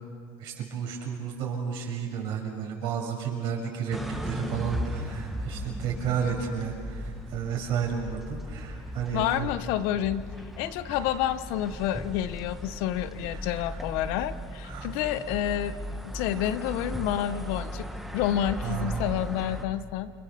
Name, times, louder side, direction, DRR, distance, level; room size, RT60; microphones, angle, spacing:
voice 1, 0.4-9.5 13.3-13.8 14.6-14.9 18.6-19.2, right 7 dB, 55° right, 0 dB, 7.1 m, -32 dB
sound 1, 3.9-19.6, equal, ahead, 1.5 m, -37 dB
voice 2, 9.1-10.3 10.6-15.8 16.0-17.9 18.1-20.1, left 11 dB, 70° left, 12 dB, 1.2 m, -29 dB
29.5 x 25.5 x 7.0 m, 2.2 s
cardioid pair, 145°, 10 cm